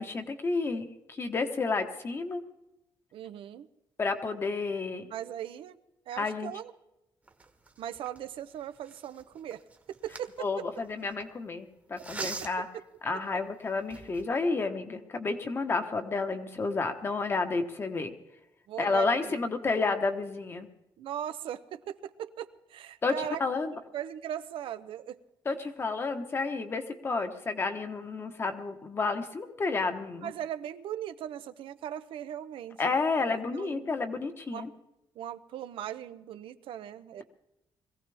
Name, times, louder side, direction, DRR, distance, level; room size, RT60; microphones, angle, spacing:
voice 1, 0.0-2.4 4.0-5.0 6.2-6.5 10.4-12.7 13.0-18.1 18.8-20.7 23.0-23.7 25.4-30.3 32.8-34.7, left 3 dB, 25° left, 7 dB, 1.2 m, -31 dB
voice 2, 3.1-3.7 5.1-5.8 6.1-6.7 7.8-9.6 10.0-10.5 12.2-12.5 12.7-12.8 13.1-13.2 18.7-19.5 21.0-23.4 23.9-25.2 30.2-32.8 33.3-33.9 34.5-34.7 35.2-37.2, right 10 dB, 85° right, 11 dB, 0.8 m, -39 dB
sound 1, 7.3-11.2 12.0-12.8 13.3-13.4 13.8-14.3, right 3 dB, 15° right, 1.3 m, -43 dB
22.0 x 16.0 x 3.5 m, 0.89 s
wide cardioid pair, 175°, 9 cm